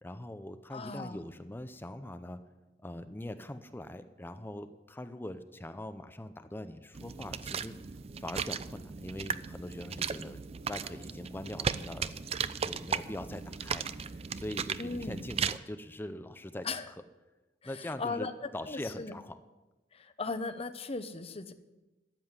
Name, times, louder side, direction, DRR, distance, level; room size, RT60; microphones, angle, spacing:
voice 1, 0.0-2.4 2.8-7.7 8.2-12.1 12.6-17.0 17.6-19.4, left 1 dB, 10° left, 10 dB, 0.6 m, -42 dB
voice 2, 0.7-1.2 14.8-15.2 16.6-16.9 18.0-18.3 18.7-19.1 19.9-21.5, left 3 dB, 35° left, 11 dB, 0.9 m, -37 dB
sound 1, 6.9-15.6, right 6 dB, 35° right, 0.5 m, -36 dB
13.5 x 7.7 x 9.7 m, 1.1 s
head